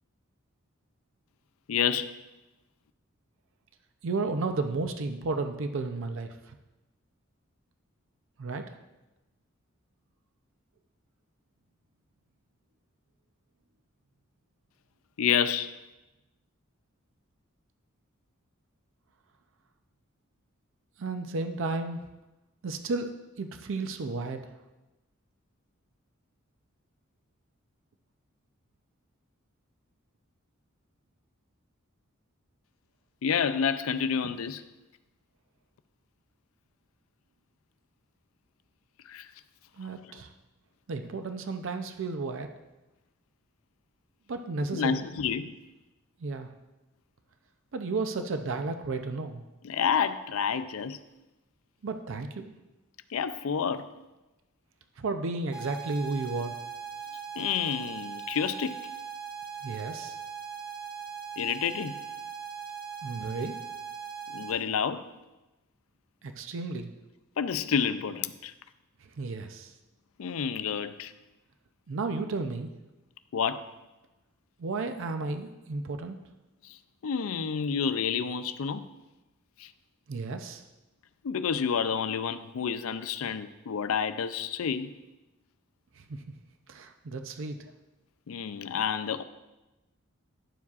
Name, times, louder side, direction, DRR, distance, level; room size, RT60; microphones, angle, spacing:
voice 1, 1.7-2.1 15.2-15.7 33.2-34.6 39.1-39.3 44.7-45.5 49.6-51.0 53.1-53.9 57.4-58.8 61.4-62.0 64.3-65.0 67.4-68.5 70.2-71.1 73.3-73.7 76.6-76.8 77.0-78.9 79.6-79.7 81.2-84.9 88.3-89.2, left 7 dB, 80° left, 0.4 m, -29 dB
voice 2, 4.0-6.6 8.4-8.7 21.0-22.0 22.6-23.1 23.4-24.4 39.8-40.3 40.9-42.5 44.3-45.0 46.2-46.5 47.7-49.4 51.8-52.6 55.0-56.5 59.6-60.2 63.0-63.6 66.2-66.9 69.2-69.7 71.9-72.7 74.6-76.2 80.1-80.6 86.0-86.2 86.7-87.6, right 3 dB, 65° right, 0.5 m, -33 dB
sound 1, 55.5-64.5, right 7 dB, 25° right, 1.0 m, -40 dB
11.0 x 7.1 x 2.4 m
head